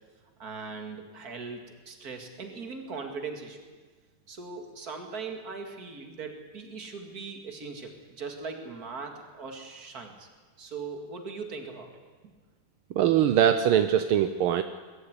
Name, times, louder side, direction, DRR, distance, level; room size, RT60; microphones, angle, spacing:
voice 1, 0.4-3.6 4.3-10.3 10.6-12.3, right 4 dB, 45° right, 5 dB, 2.6 m, -40 dB
voice 2, 13.0-14.6, right 10 dB, 80° right, 10 dB, 1.6 m, -22 dB
21.5 x 13.0 x 9.6 m, 1.4 s
omnidirectional pair, 2.4 m